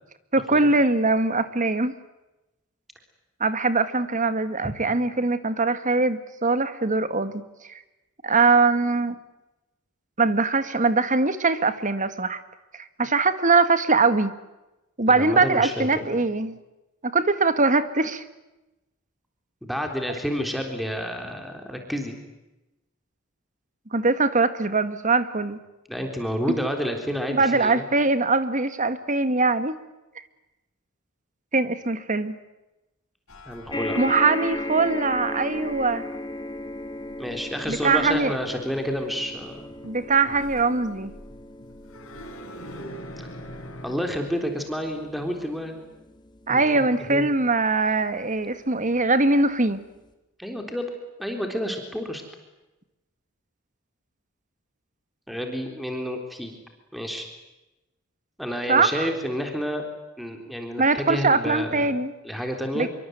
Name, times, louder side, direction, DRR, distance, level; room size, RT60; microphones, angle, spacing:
voice 1, 0.3-2.0 3.4-7.7 8.2-9.2 10.2-12.4 12.8-14.3 15.0-16.6 17.1-18.2 23.9-25.6 26.5-26.6 27.3-29.8 31.5-32.3 34.0-36.0 37.7-38.3 39.8-41.1 46.5-49.8 58.7-59.1 60.8-62.1 62.7-62.9, right 3 dB, 40° right, 11 dB, 1.9 m, -22 dB
voice 2, 15.1-16.2 19.6-22.2 25.9-27.8 33.5-34.0 37.2-39.7 43.8-45.8 46.5-47.3 50.4-50.9 51.2-52.2 55.3-56.6 56.9-57.3 58.4-59.9 60.2-62.0 62.2-62.9, equal, ahead, 4 dB, 3.7 m, -30 dB
sound 1, 33.3-44.0, equal, 85° left, 5.2 m, -45 dB
sound 2, 33.7-48.3 49.0-49.1 49.4-49.5, left 1 dB, 20° left, 3.3 m, -37 dB
26.5 x 24.0 x 9.4 m, 1.0 s
head